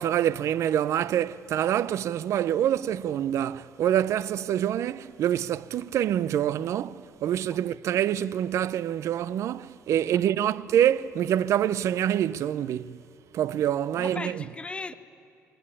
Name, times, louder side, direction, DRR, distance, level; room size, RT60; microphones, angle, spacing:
voice 1, 0.0-13.0 13.3-14.3, right 10 dB, 65° right, 0.5 m, -26 dB
voice 2, 7.4-8.0 10.0-10.3 13.9-14.9, left 3 dB, 20° left, 0.9 m, -39 dB
21.0 x 18.5 x 9.8 m
cardioid pair, 115°, 5 cm